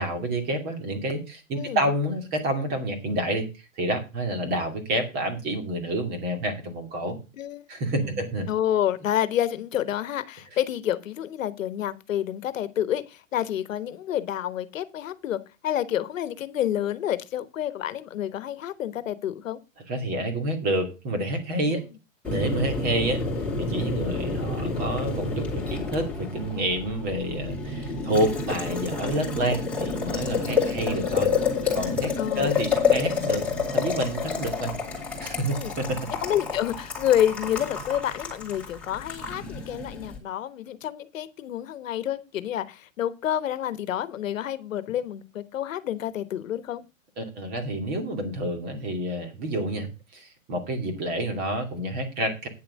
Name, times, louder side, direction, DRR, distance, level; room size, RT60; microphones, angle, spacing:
voice 1, 0.0-3.5 3.8-7.2 7.7-8.5 19.9-21.8 22.3-23.2 23.6-31.3 31.7-36.0 47.2-49.9 50.1-52.5, right 1 dB, 25° right, 2.6 m, -28 dB
voice 2, 1.5-1.9 7.4-7.6 8.0-19.6 30.7-30.8 32.2-32.6 34.3-34.4 35.5-35.7 36.2-46.8, left 11 dB, 75° left, 1.3 m, -29 dB
Boiling, 22.2-40.2, left 5 dB, 5° left, 2.9 m, -29 dB
9.5 x 7.1 x 6.4 m
hypercardioid pair, 165°, 40 cm